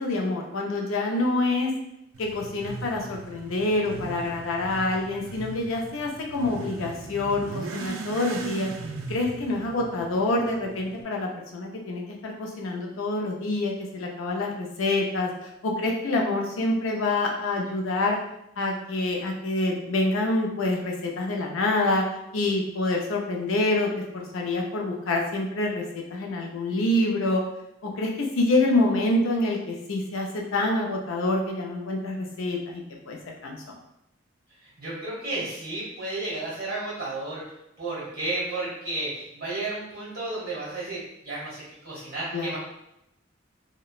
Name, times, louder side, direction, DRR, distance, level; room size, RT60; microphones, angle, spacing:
voice 1, 0.0-1.7 2.2-8.7 9.1-15.3 15.6-18.2 18.6-22.0 22.3-27.4 27.8-33.8 42.3-42.6, left 2 dB, 90° left, 0 dB, 0.5 m, -26 dB
Motorcycle / Accelerating revving vroom, 2.1-11.0, right 4 dB, 85° right, 0.4 m, -39 dB
voice 2, 34.8-37.4 37.8-42.6, right 2 dB, 50° right, -6 dB, 1.5 m, -32 dB
2.9 x 2.1 x 2.4 m, 0.84 s
head